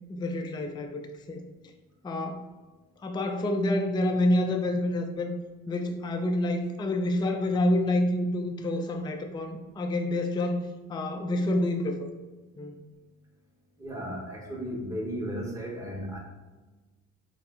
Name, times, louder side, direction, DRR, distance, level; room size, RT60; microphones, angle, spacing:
voice 1, 0.1-1.5 2.0-2.5 3.0-5.3 5.7-10.6 10.9-12.1 12.6-12.8, left 1 dB, 15° left, 5 dB, 0.3 m, -28 dB
voice 2, 13.8-16.2, equal, 10° right, -2 dB, 1.1 m, -35 dB
4.7 x 2.0 x 3.7 m, 1.2 s
cardioid pair, 90°, 30 cm